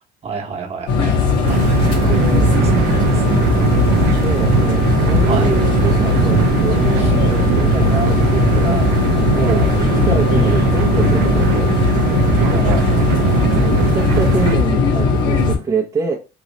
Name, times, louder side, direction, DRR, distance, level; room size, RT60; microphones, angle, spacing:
voice 1, 0.2-2.2 2.6-2.7 3.1-3.2 5.3-5.6 7.0-7.1 9.3-9.7 12.4-13.6, right 5 dB, 40° right, 1 dB, 1.1 m, -28 dB
sound 1, 0.9-15.6, left 5 dB, 90° left, 1.3 m, -17 dB
sound 2, 1.5-14.6, right 10 dB, 85° right, 0.4 m, -19 dB
voice 2, 2.0-2.5 4.2-8.9 9.4-11.7 13.5-16.2, right 4 dB, 20° right, -3 dB, 0.7 m, -26 dB
3.0 x 3.0 x 3.9 m, 0.29 s
cardioid pair, 110°, 17 cm